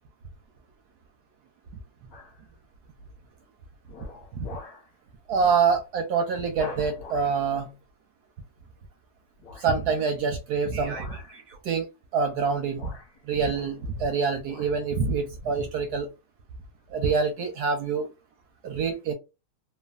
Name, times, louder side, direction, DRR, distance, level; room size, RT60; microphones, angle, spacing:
sound 1, 2.1-2.5 3.0-3.3 3.9-4.9 5.3-5.5 5.8-5.9 6.5-7.4 9.4-9.8 10.8-11.4 12.3-12.4 12.7-14.1 14.4-14.8 15.3-15.4, left 2 dB, 55° left, 1.2 m, -44 dB
voice 1, 5.3-7.7 9.6-11.9 12.1-12.9 13.3-16.1 16.9-18.1 18.6-19.1, right 5 dB, 75° right, 0.9 m, -26 dB
3.3 x 2.2 x 2.3 m
omnidirectional pair, 2.2 m